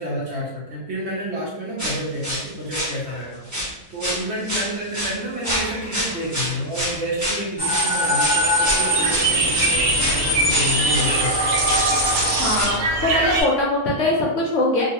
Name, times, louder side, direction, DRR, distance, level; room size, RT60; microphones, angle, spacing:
voice 1, 0.0-3.4 3.9-11.3, equal, 60° right, -5 dB, 0.8 m, -29 dB
sound 1, 1.8-3.2 3.5-3.7 4.0-11.1 11.6-12.7, equal, 15° right, 0.7 m, -27 dB
sound 2, 7.6-12.6, equal, 10° left, 1.3 m, -22 dB
sound 3, 8.3-13.4, right 2 dB, 80° right, 1.1 m, -24 dB
voice 2, 12.4-14.8, left 2 dB, 70° left, -3 dB, 0.8 m, -21 dB
2.5 x 2.3 x 2.8 m, 0.96 s
omnidirectional pair, 1.6 m